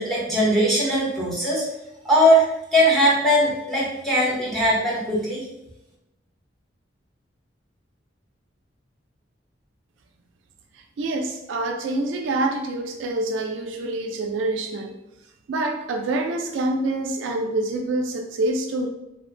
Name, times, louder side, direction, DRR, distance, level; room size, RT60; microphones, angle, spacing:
voice 1, 0.0-1.6 2.0-2.4 2.7-5.5, equal, ahead, -6 dB, 0.8 m, -20 dB
voice 2, 11.0-15.0 15.5-18.9, right 2 dB, 80° right, 3 dB, 0.3 m, -26 dB
2.9 x 2.1 x 2.4 m, 0.87 s
head